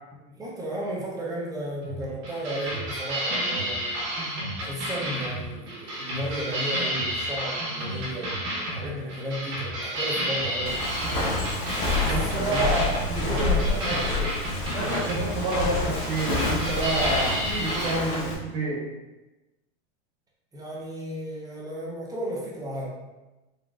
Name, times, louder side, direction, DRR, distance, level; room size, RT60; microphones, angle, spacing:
voice 1, 0.3-10.9 12.0-14.1 20.5-22.8, right 1 dB, 10° right, -4 dB, 0.5 m, -34 dB
sound 1, 1.8-17.9, right 1 dB, 35° right, 1.0 m, -31 dB
Walk footsteps, 10.7-18.3, left 3 dB, 65° left, 1.0 m, -28 dB
voice 2, 12.0-14.3 14.7-18.9, right 2 dB, 65° right, -5 dB, 1.4 m, -29 dB
3.8 x 2.3 x 2.3 m, 1.1 s
supercardioid pair, 140°, 34 cm